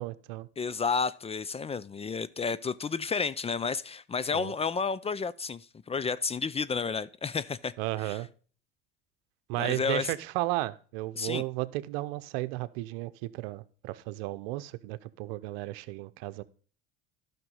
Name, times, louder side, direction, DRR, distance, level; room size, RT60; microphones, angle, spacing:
voice 1, 0.0-0.5 4.3-4.5 7.8-8.3 9.5-16.4, right 18 dB, 75° right, 0.8 m, -34 dB
voice 2, 0.6-7.7 8.0-8.2 9.6-10.1 11.2-11.4, left 5 dB, 20° left, 0.5 m, -31 dB
12.0 x 6.0 x 5.4 m
supercardioid pair, 90°, 30 cm